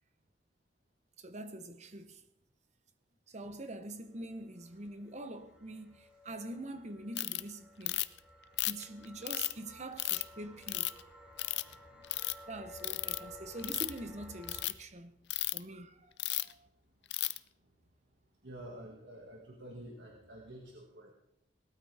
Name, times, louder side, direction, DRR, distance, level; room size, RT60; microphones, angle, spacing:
voice 1, 1.2-2.2 3.3-8.1 8.6-10.9 12.5-15.2 15.5-16.1 16.4-16.7, right 2 dB, 40° right, 0.9 m, -45 dB
sound 1, 4.1-14.7, left 1 dB, 10° right, 3.0 m, -55 dB
Ratchet pawl, 7.2-7.4 7.9-8.2 8.6-9.5 10.0-10.2 10.7-11.0 11.4-11.7 12.0-12.3 12.8-13.2 13.6-14.0 14.4-14.7 15.3-15.6 16.2-16.5 17.1-17.4, left 17 dB, 65° left, 0.5 m, -33 dB
voice 2, 11.3-12.2 13.2-13.3 18.4-21.1, right 1 dB, 75° right, 2.0 m, -50 dB
18.5 x 13.0 x 3.5 m
head